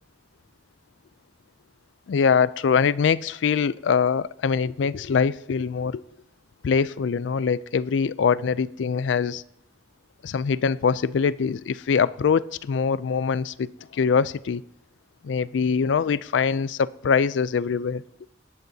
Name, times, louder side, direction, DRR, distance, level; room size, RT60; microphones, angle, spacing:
voice 1, 2.1-6.0 6.6-9.4 10.2-14.6 15.2-18.0, left 6 dB, 80° left, 0.4 m, -23 dB
17.5 x 12.0 x 2.8 m
head